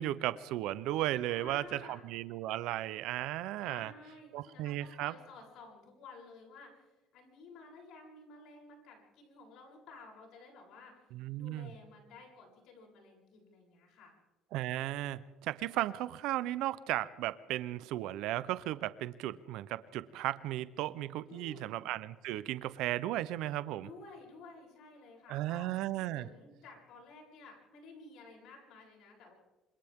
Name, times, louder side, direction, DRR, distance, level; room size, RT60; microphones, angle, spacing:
voice 1, 0.0-3.9 4.3-5.1 11.1-11.7 14.5-23.9 25.3-26.3, right 14 dB, 75° right, 15 dB, 0.7 m, -35 dB
voice 2, 1.3-2.0 3.6-11.0 11.4-14.2 21.3-21.8 23.8-25.7 26.1-29.3, left 3 dB, 70° left, -1 dB, 8.0 m, -53 dB
26.5 x 26.5 x 3.7 m, 1.2 s
cardioid pair, 140°, 0 cm